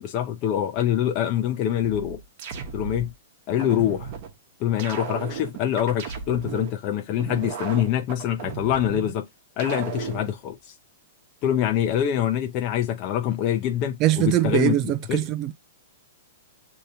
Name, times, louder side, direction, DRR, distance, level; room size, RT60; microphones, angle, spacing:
voice 1, 0.0-2.2 2.7-3.1 3.5-4.1 4.6-9.2 9.6-10.7 11.4-14.8 15.1-15.2, left 10 dB, 40° left, 0.6 m, -25 dB
sound 1, 1.8-3.1 3.6-4.3 4.8-6.7 7.2-9.1 9.6-10.3, right 6 dB, 50° right, 0.9 m, -35 dB
voice 2, 14.0-15.5, right 14 dB, 35° right, 0.3 m, -22 dB
6.5 x 2.8 x 2.7 m
hypercardioid pair, 130°, 0 cm